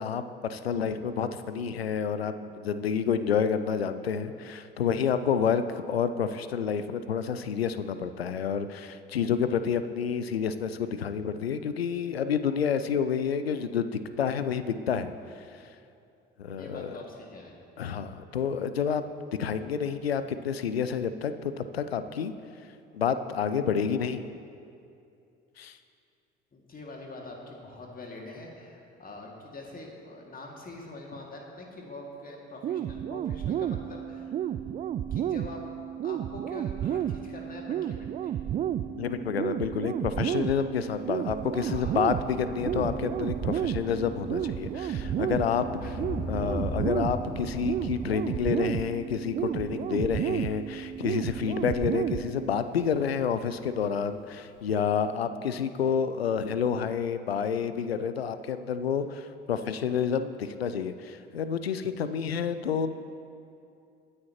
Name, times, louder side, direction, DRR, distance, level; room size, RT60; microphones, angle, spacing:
voice 1, 0.0-15.1 15.3-15.8 16.4-17.0 17.8-19.1 19.4-22.3 22.9-24.3 25.6-25.8 38.9-45.9 46.3-62.9, left 7 dB, 80° left, 11 dB, 0.5 m, -29 dB
voice 2, 16.6-17.6 26.5-34.4 35.1-35.6 36.0-38.3 41.6-42.0 45.7-46.0, left 2 dB, 30° left, 0 dB, 2.2 m, -44 dB
sound 1, 32.6-52.6, right 10 dB, 25° right, 0.3 m, -32 dB
Thunder, 40.8-53.7 54.6-54.7, equal, 80° right, 3.4 m, -40 dB
21.5 x 9.8 x 3.0 m, 2.6 s
figure-of-eight pair, 55°, 30 cm